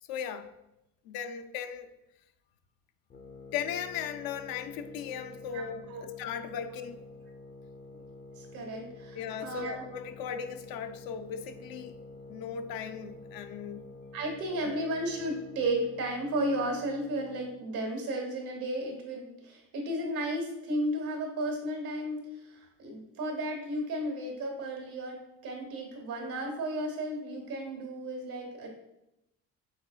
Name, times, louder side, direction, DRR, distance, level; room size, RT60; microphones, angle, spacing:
voice 1, 0.1-0.5 1.1-1.9 3.5-7.0 9.1-12.0 12.3-13.9 14.6-14.7, left 8 dB, 80° left, 0.5 m, -37 dB
sound 1, 3.1-17.7, left 2 dB, 25° left, 0.4 m, -48 dB
voice 2, 5.5-6.1 8.4-9.9 14.1-28.7, right 1 dB, 80° right, 1.4 m, -34 dB
5.8 x 3.7 x 2.4 m
cardioid pair, 95°, 35 cm